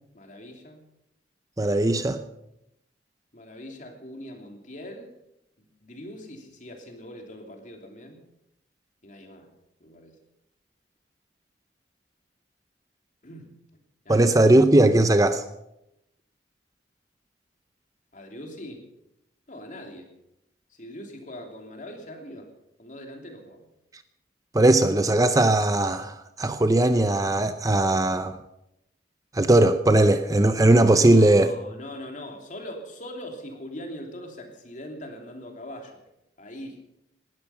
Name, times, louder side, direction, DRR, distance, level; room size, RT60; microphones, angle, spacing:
voice 1, 0.1-0.8 3.3-5.1 5.6-8.2 9.0-9.5 9.8-10.1 13.2-13.5 14.0-14.3 18.1-18.9 19.5-20.1 20.8-22.5 22.8-23.6 31.0-36.0 36.4-36.8, left 1 dB, 45° left, 3 dB, 3.0 m, -41 dB
voice 2, 1.6-2.2 14.1-15.4 24.5-28.4 29.3-31.5, right 1 dB, 20° right, 10 dB, 0.6 m, -19 dB
19.0 x 13.0 x 5.7 m, 0.86 s
head